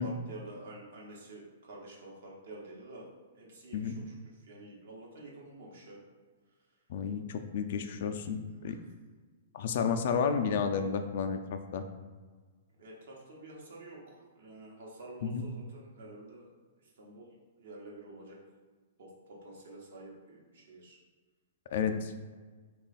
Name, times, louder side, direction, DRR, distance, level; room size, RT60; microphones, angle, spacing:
voice 1, 0.0-3.0 3.3-4.1 4.4-6.0 8.7-8.8 12.8-16.5 17.0-17.3 17.6-18.4 19.0-21.0, right 2 dB, 70° right, -2 dB, 1.0 m, -49 dB
voice 2, 6.9-8.8 9.5-11.8 15.2-15.4 21.7-22.1, left 6 dB, 60° left, 7 dB, 0.3 m, -31 dB
3.2 x 2.4 x 4.0 m, 1.4 s
hypercardioid pair, 125°, 0 cm